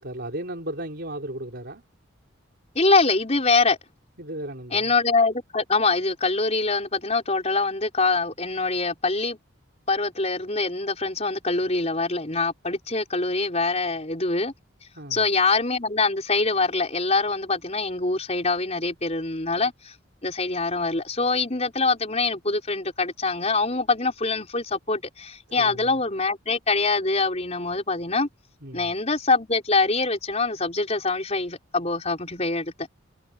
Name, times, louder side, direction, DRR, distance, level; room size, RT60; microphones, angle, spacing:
voice 1, 0.0-1.8 4.2-4.9 14.9-15.2 25.6-26.0 28.6-28.9, right 1 dB, 55° right, 4.4 m, -35 dB
voice 2, 2.7-3.8 4.7-9.4 9.9-14.5 15.1-19.9 20.2-28.3 28.7-32.7, left 3 dB, 30° left, 4.6 m, -24 dB
head